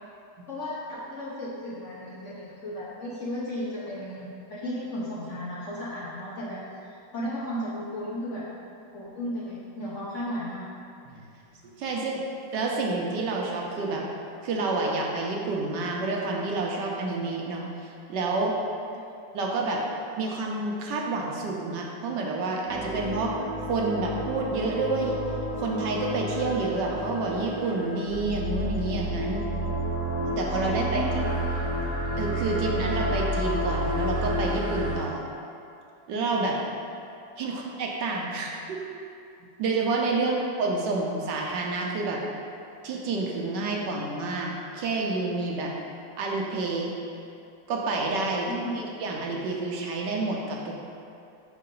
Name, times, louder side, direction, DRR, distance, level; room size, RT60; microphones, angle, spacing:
voice 1, 0.5-8.4 8.9-10.7 18.9-19.1 30.9-31.3 37.4-37.6 40.2-40.3 48.5-48.7, equal, 55° left, -8 dB, 0.8 m, -35 dB
voice 2, 11.6-12.2 12.5-14.0 14.4-18.5 19.3-19.8 20.2-23.3 23.7-25.2 25.5-29.5 30.3-31.2 32.2-35.2 36.1-36.6 37.4-38.8 39.4-42.3 42.8-45.7 46.2-46.9 47.7-50.8, right 3 dB, 75° right, -1 dB, 1.2 m, -29 dB
sound 1, 22.7-34.9, equal, 45° right, 1.1 m, -30 dB
4.9 x 3.8 x 5.1 m, 2.5 s
omnidirectional pair, 2.0 m